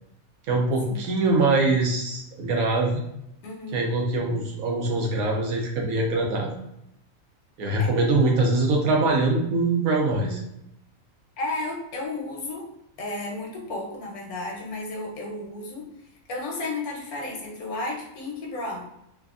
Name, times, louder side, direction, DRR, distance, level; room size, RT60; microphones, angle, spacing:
voice 1, 0.5-3.0 3.7-6.5 7.6-10.4, right 2 dB, 80° right, 1 dB, 1.1 m, -23 dB
voice 2, 3.4-3.8 7.8-7.9 11.4-12.7 13.0-15.9 16.3-18.9, left 2 dB, 85° left, -1 dB, 1.3 m, -33 dB
3.2 x 2.1 x 2.4 m, 0.81 s
omnidirectional pair, 1.5 m